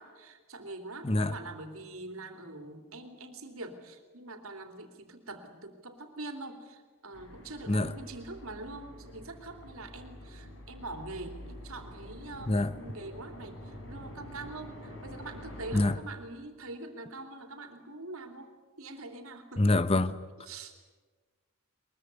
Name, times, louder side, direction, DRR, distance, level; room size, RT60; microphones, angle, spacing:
voice 1, 0.0-19.8 20.5-20.7, right 2 dB, 70° right, 3.2 m, -44 dB
sound 1, 7.1-15.9, left 1 dB, 60° left, 4.6 m, -47 dB
voice 2, 19.6-20.1, left 2 dB, 25° left, 0.9 m, -25 dB
22.5 x 22.0 x 9.6 m
head